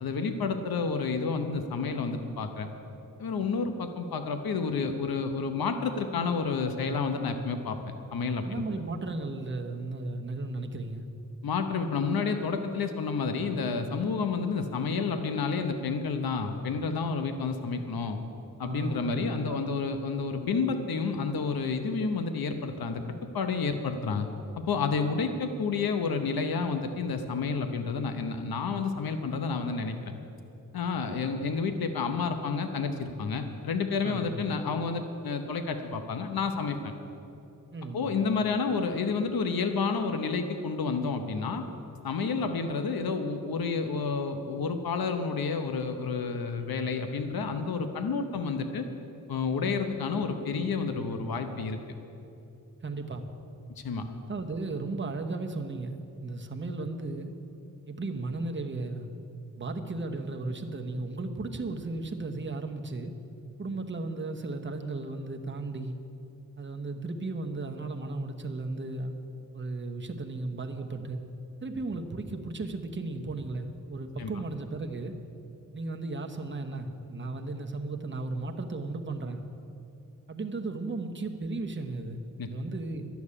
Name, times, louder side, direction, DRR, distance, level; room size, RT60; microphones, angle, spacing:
voice 1, 0.0-2.7 3.2-7.8 8.1-8.6 11.4-18.2 18.6-23.0 23.3-24.3 24.7-30.1 30.7-36.9 37.9-41.6 42.0-48.8 49.3-51.8 53.8-54.0 74.2-74.3 82.4-82.5, left 4 dB, 80° left, 7 dB, 0.9 m, -30 dB
voice 2, 8.4-11.1 18.6-19.6 34.0-34.4 37.7-38.1 52.8-53.3 54.3-57.3 57.9-59.1 59.5-63.1 63.6-66.0 66.6-69.2 69.5-71.2 71.6-75.1 75.7-79.4 80.3-83.1, right 2 dB, 30° right, 4 dB, 1.0 m, -35 dB
11.5 x 7.1 x 9.7 m, 2.8 s
wide cardioid pair, 85°, 36 cm